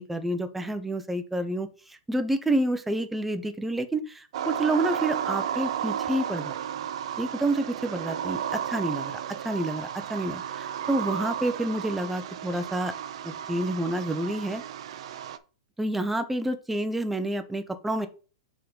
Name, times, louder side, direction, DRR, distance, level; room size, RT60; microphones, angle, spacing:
voice 1, 0.0-6.6 7.2-9.2 9.4-12.9 13.2-14.6 15.8-18.1, right 1 dB, 5° right, 8 dB, 0.6 m, -29 dB
sound 1, 4.3-15.4, right 9 dB, 60° right, 0.6 m, -33 dB
5.6 x 3.7 x 5.2 m, 0.36 s
hypercardioid pair, 150°, 3 cm